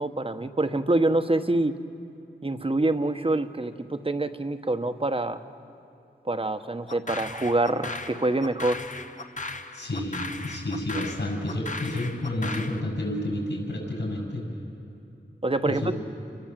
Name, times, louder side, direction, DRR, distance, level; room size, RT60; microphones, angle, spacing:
voice 1, 0.0-1.8 2.4-5.4 6.2-8.8 15.4-15.9, right 2 dB, 30° right, 9 dB, 1.1 m, -26 dB
sound 1, 6.9-12.8, left 3 dB, 40° left, 1.0 m, -37 dB
voice 2, 9.7-14.5 15.6-15.9, left 1 dB, 65° left, 0 dB, 7.7 m, -30 dB
29.0 x 21.5 x 7.7 m, 2.9 s
wide cardioid pair, 70°, 20 cm